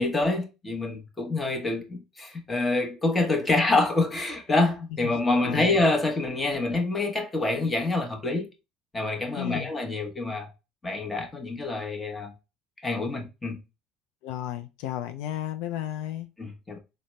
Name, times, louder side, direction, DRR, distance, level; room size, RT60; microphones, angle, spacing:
voice 1, 0.0-8.5 8.9-10.5 10.8-12.3 12.8-13.6 16.4-16.8, left 2 dB, 15° left, 0.9 m, -26 dB
voice 2, 5.0-5.7 9.4-9.7 14.2-16.3, left 12 dB, 75° left, 0.3 m, -33 dB
4.0 x 2.1 x 3.1 m
supercardioid pair, 100°, 0 cm